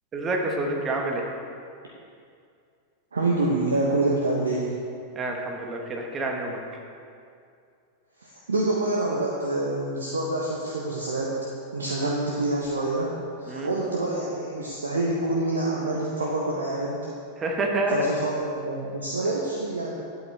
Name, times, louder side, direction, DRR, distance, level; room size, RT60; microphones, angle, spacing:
voice 1, 0.1-1.3 5.1-6.6 11.8-12.1 13.5-13.7 17.4-18.0, right 2 dB, 25° right, 1 dB, 1.5 m, -28 dB
voice 2, 3.1-4.7 8.2-11.3 11.7-13.1 13.4-17.0 17.9-20.0, right 2 dB, 70° right, -3 dB, 1.1 m, -26 dB
12.0 x 8.2 x 3.4 m, 2.4 s
figure-of-eight pair, 90°, 0 cm